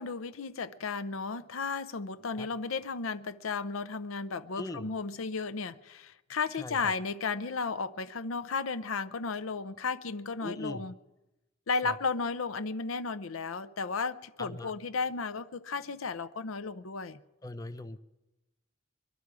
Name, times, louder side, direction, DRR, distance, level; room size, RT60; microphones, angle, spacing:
voice 1, 0.0-10.9 11.7-17.2, left 4 dB, 90° left, 0.6 m, -34 dB
voice 2, 4.6-4.9 6.6-6.8 10.4-10.8 11.8-12.0 14.4-14.7 17.4-18.0, left 1 dB, 15° left, 0.5 m, -40 dB
23.5 x 12.0 x 4.8 m
head